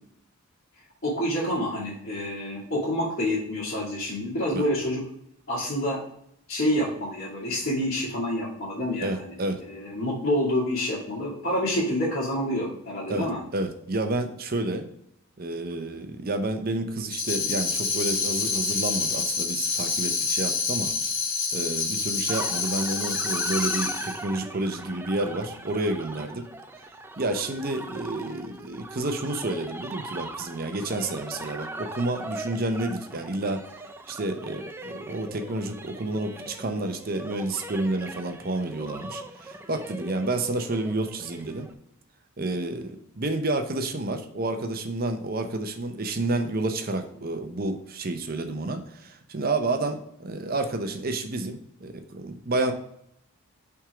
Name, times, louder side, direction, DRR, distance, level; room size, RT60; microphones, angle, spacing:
voice 1, 1.0-5.0 5.5-6.0 6.5-9.3 9.7-13.4, left 1 dB, 45° left, -12 dB, 2.4 m, -27 dB
voice 2, 9.0-9.6 13.1-14.9 15.4-20.9 21.5-26.4 27.2-33.6 34.1-41.7 42.4-52.7, right 2 dB, 40° right, 7 dB, 0.7 m, -30 dB
Tambourine, 17.1-24.2, left 5 dB, 60° left, 1.2 m, -27 dB
sound 1, 22.3-41.7, right 2 dB, 10° right, 0.3 m, -40 dB
6.0 x 3.6 x 4.7 m, 0.74 s
head